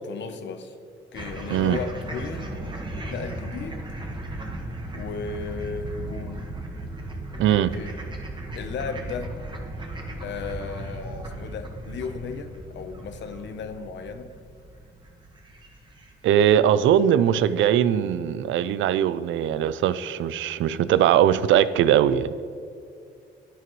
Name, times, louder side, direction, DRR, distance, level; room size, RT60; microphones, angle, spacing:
voice 1, 0.0-0.7 1.1-2.6 2.9-3.9 4.9-6.6 7.3-7.4 7.7-8.0 8.6-9.3 10.2-14.3, left 5 dB, 65° left, 9 dB, 0.9 m, -35 dB
sound 1, 1.1-16.5, right 1 dB, 25° right, 1.5 m, -36 dB
voice 2, 7.4-7.7 16.2-22.3, right 10 dB, 75° right, 15 dB, 0.5 m, -20 dB
11.0 x 9.4 x 3.1 m, 2.5 s
cardioid pair, 90°, 20 cm